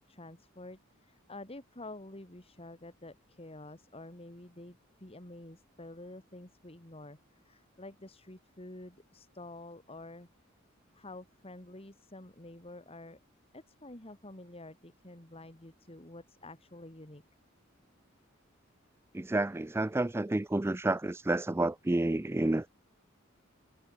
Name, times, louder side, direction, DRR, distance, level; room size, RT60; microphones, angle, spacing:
voice 1, 0.0-10.3 10.9-13.2 13.5-17.2, left 2 dB, 30° left, 2.8 m, -49 dB
voice 2, 19.1-22.7, right 2 dB, 10° right, 0.4 m, -30 dB
head